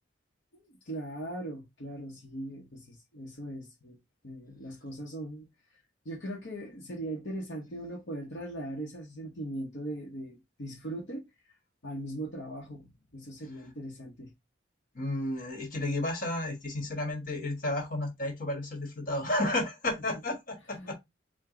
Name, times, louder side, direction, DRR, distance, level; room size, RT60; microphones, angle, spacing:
voice 1, 0.5-4.0 4.2-5.5 6.0-11.3 11.8-14.3 20.7-20.9, right 1 dB, 65° left, 0.9 m, -39 dB
voice 2, 14.9-20.9, left 1 dB, 45° left, 1.4 m, -32 dB
4.8 x 2.2 x 3.6 m
head